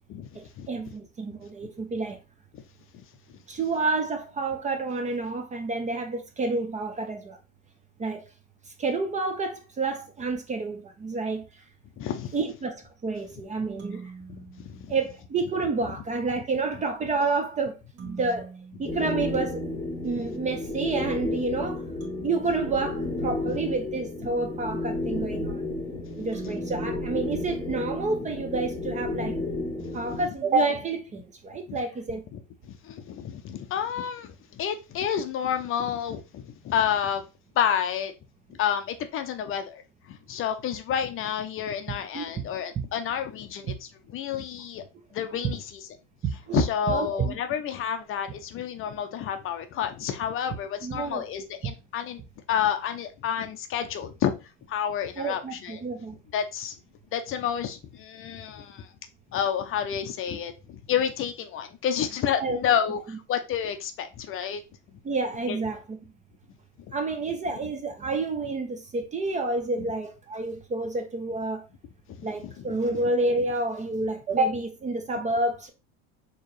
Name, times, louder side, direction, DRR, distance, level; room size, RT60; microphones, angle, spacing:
voice 1, 0.4-2.2 3.5-7.4 8.0-8.2 8.8-11.4 12.3-12.8 13.0-14.0 14.9-18.5 18.8-19.6 20.0-21.8 22.2-25.6 26.2-29.4 29.9-32.2 42.1-42.3 42.8-42.9 46.2-47.4 50.8-51.2 55.2-56.2 62.4-62.6 65.0-65.8 66.9-71.6 72.2-75.7, right 3 dB, 20° right, 0.5 m, -29 dB
voice 2, 12.0-12.3 14.3-14.9 20.0-20.3 23.5-23.6 24.4-24.5 25.9-26.5 28.5-28.6 29.1-29.2 29.9-30.3 31.7-31.8 32.3-32.4 32.7-37.2 37.6-38.1 38.6-44.8 45.1-45.8 46.5-52.2 52.5-55.8 56.3-56.8 57.1-58.9 59.3-64.6 65.5-65.6 72.4-73.1, left 8 dB, 35° left, 0.5 m, -30 dB
sound 1, 13.8-15.5 18.0-20.0 22.0-24.1 26.3-28.4, right 5 dB, 65° right, 1.8 m, -45 dB
sound 2, 18.9-30.2, left 2 dB, 10° left, 0.9 m, -32 dB
4.5 x 2.9 x 3.1 m
supercardioid pair, 130°, 36 cm